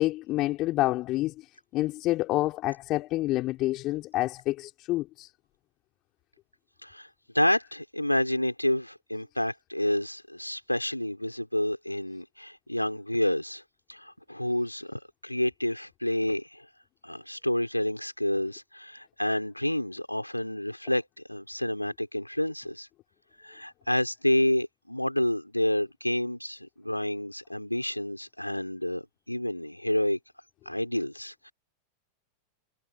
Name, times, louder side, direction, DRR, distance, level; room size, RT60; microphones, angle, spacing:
voice 1, 0.0-1.5 1.7-5.3, left 17 dB, 35° left, 4.1 m, -28 dB
voice 2, 7.3-13.6 13.9-16.7 17.0-21.0 21.3-22.9 23.4-30.2 30.7-31.5, left 1 dB, 90° left, 4.0 m, -29 dB
figure-of-eight pair, 90°, 0 cm